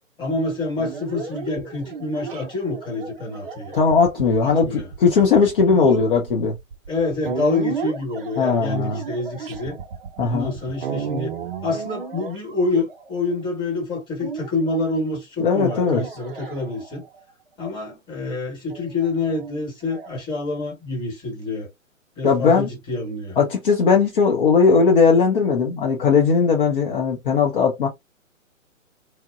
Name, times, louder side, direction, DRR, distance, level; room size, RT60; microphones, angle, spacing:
voice 1, 0.2-3.7 4.4-4.9 5.6-6.1 6.9-9.8 10.2-11.3 11.6-17.0 17.6-21.7 22.2-23.4, left 3 dB, 10° left, 1.1 m, -27 dB
sound 1, 0.8-13.4 14.2-14.8 15.7-17.2 18.7-20.1, right 6 dB, 40° right, 0.5 m, -34 dB
voice 2, 3.7-6.5 8.4-9.0 10.2-10.5 15.4-16.0 22.2-22.7 23.4-27.9, left 5 dB, 40° left, 0.6 m, -18 dB
2.9 x 2.1 x 2.3 m
hypercardioid pair, 135°, 41 cm